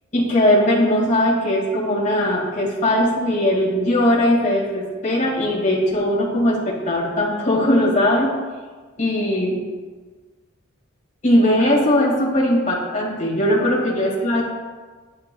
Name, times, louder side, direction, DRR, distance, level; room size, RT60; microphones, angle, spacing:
voice 1, 0.1-8.3 9.0-9.6 11.2-14.4, left 1 dB, 35° left, -4 dB, 2.1 m, -19 dB
11.0 x 9.6 x 2.3 m, 1.4 s
head